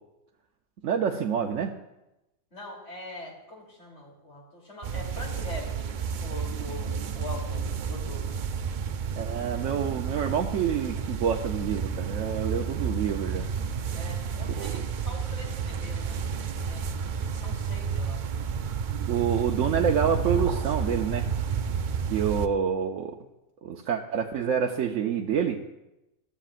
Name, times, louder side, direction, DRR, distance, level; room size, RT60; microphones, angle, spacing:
voice 1, 0.8-1.7 9.2-13.4 14.5-14.8 19.1-21.2 22.1-23.2 23.6-25.6, right 7 dB, 75° right, 2 dB, 1.1 m, -27 dB
voice 2, 2.5-5.9 6.2-8.4 13.9-17.1 17.4-18.3, left 2 dB, 65° left, -2 dB, 3.5 m, -43 dB
sound 1, 4.8-22.5, right 6 dB, 60° right, 0.5 m, -31 dB
20.0 x 14.0 x 2.5 m, 0.95 s
omnidirectional pair, 1.3 m